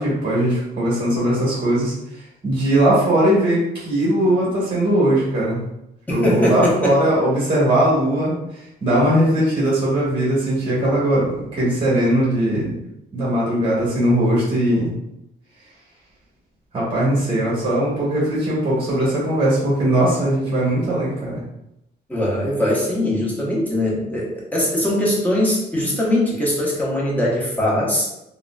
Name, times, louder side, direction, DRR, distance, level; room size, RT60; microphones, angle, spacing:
voice 1, 0.0-1.9 2.4-5.6 6.1-8.3 8.8-12.7 13.1-14.9 16.7-21.4, right 1 dB, 30° right, -7 dB, 1.2 m, -19 dB
voice 2, 6.1-7.0 22.1-28.1, left 1 dB, 10° left, -5 dB, 0.9 m, -21 dB
3.8 x 2.1 x 2.2 m, 0.85 s
cardioid pair, 120°, 18 cm